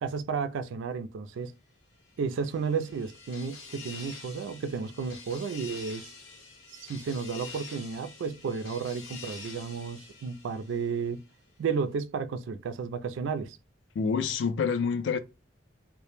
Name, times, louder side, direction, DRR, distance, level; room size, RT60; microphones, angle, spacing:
voice 1, 0.0-1.5 2.2-6.1 6.7-11.2 11.6-13.6, right 5 dB, 70° right, 0.3 m, -32 dB
sound 1, 2.1-11.2, left 4 dB, 80° left, 0.7 m, -47 dB
voice 2, 14.0-15.2, left 5 dB, 65° left, 0.3 m, -27 dB
2.1 x 2.0 x 2.9 m
head